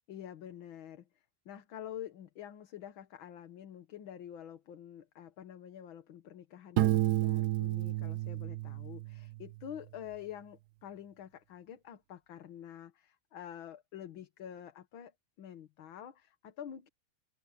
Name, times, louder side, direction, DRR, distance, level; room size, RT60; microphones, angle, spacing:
voice 1, 0.1-16.9, left 10 dB, 75° left, 2.0 m, -47 dB
Piano, 6.8-9.5, right 15 dB, 70° right, 1.0 m, -31 dB
open air
omnidirectional pair, 2.2 m